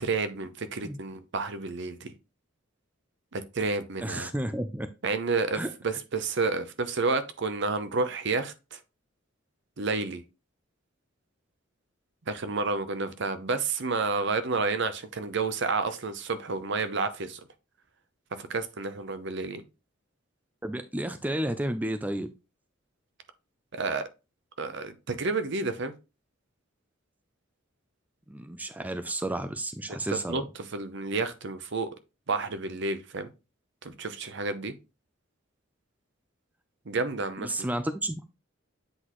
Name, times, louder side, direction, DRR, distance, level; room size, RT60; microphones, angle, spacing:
voice 1, 0.0-2.1 3.3-4.3 5.0-8.8 9.8-10.2 12.3-17.4 18.3-19.6 23.7-24.0 24.6-25.9 29.9-31.9 32.3-33.3 33.8-34.7 36.9-37.7, right 3 dB, 60° right, 0.8 m, -30 dB
voice 2, 4.0-4.9 5.5-5.7 20.6-22.3 28.3-30.4 37.4-38.3, right 1 dB, 10° right, 0.4 m, -32 dB
7.8 x 4.0 x 3.1 m
head